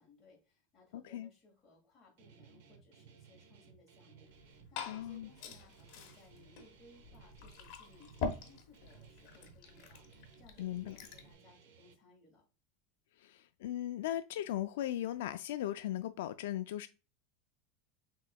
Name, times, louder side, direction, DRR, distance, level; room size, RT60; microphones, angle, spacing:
voice 1, 0.0-12.4, left 3 dB, 10° left, 2.1 m, -63 dB
Guitar, 2.2-11.9, right 7 dB, 65° right, 0.8 m, -60 dB
Liquid, 4.3-11.3, left 5 dB, 45° left, 1.0 m, -45 dB
voice 2, 4.9-5.3 10.6-11.0 13.2-16.9, left 12 dB, 75° left, 0.3 m, -38 dB
6.2 x 3.7 x 2.2 m
supercardioid pair, 180°, 0 cm